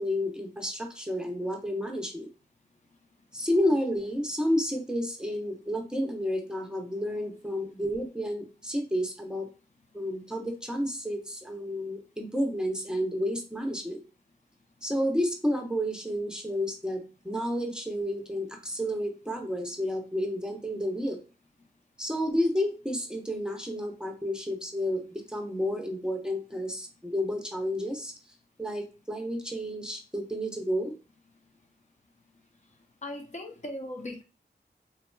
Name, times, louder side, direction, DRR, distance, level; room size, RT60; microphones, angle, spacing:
voice 1, 0.0-2.3 3.3-9.5 9.9-14.0 14.8-21.2 22.0-28.1 28.6-30.9, equal, 5° right, 2 dB, 0.8 m, -31 dB
voice 2, 33.0-34.2, left 1 dB, 45° left, 3 dB, 0.7 m, -38 dB
3.8 x 2.8 x 2.2 m, 0.33 s
wide cardioid pair, 60°, 18 cm